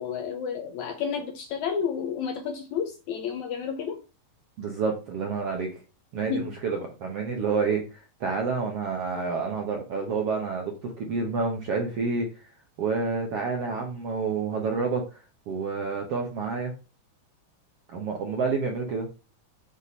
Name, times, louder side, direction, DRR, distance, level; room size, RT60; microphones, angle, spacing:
voice 1, 0.0-4.0 6.3-6.5, left 7 dB, 70° left, 5 dB, 1.8 m, -31 dB
voice 2, 4.6-5.7 6.1-6.3 6.6-12.5 12.8-16.7 17.9-19.1, right 4 dB, 75° right, 2 dB, 1.3 m, -29 dB
7.9 x 4.2 x 5.3 m, 0.32 s
omnidirectional pair, 4.2 m